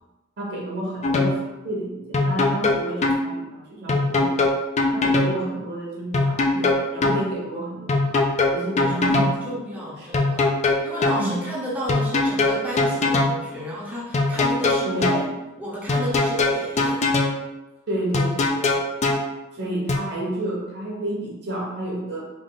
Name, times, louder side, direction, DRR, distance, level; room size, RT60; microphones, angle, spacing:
voice 1, 0.4-4.4 4.9-8.2 8.5-9.5 9.7-10.1 11.2-11.4 14.8-15.3 17.9-18.8 19.5-22.3, right 1 dB, 50° right, -3 dB, 1.1 m, -30 dB
sound 1, 1.0-1.4 2.1-3.2 3.9-5.3 6.1-7.2 7.9-9.4 10.1-11.2 11.9-13.4 14.1-15.2 15.9-17.4 18.1-19.2 19.9-20.0, left 2 dB, 30° left, 0.4 m, -21 dB
voice 2, 8.7-15.2 15.6-17.0 19.6-19.7, equal, 10° right, -7 dB, 0.7 m, -33 dB
3.5 x 2.4 x 3.9 m, 1.0 s
head